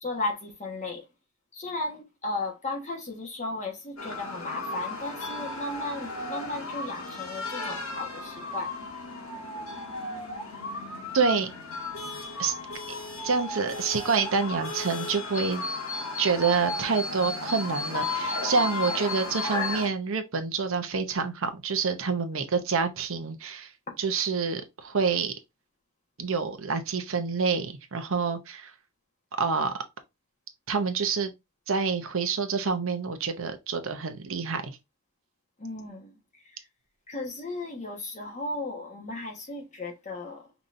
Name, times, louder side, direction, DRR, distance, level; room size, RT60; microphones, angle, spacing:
voice 1, 0.0-1.1 1.5-8.7 23.9-24.0 35.6-36.6 37.1-40.5, left 2 dB, 35° left, 1.3 m, -35 dB
sound 1, 4.0-19.9, left 3 dB, 70° left, 1.6 m, -34 dB
voice 2, 11.1-11.5 12.4-12.6 13.2-15.6 16.2-23.7 24.0-25.3 26.2-28.7 29.4-29.7 30.7-31.3 31.7-34.8, right 5 dB, 65° right, 0.8 m, -27 dB
5.2 x 2.9 x 2.6 m
head